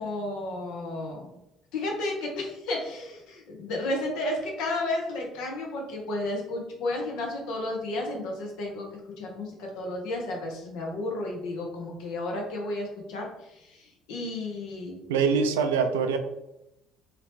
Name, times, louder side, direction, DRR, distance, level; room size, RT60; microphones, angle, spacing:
voice 1, 0.0-1.3 1.7-15.0, left 2 dB, 75° left, 0 dB, 0.9 m, -32 dB
voice 2, 15.1-16.2, right 6 dB, 90° right, 7 dB, 0.3 m, -24 dB
2.9 x 2.7 x 3.4 m, 0.87 s
hypercardioid pair, 65°, 0 cm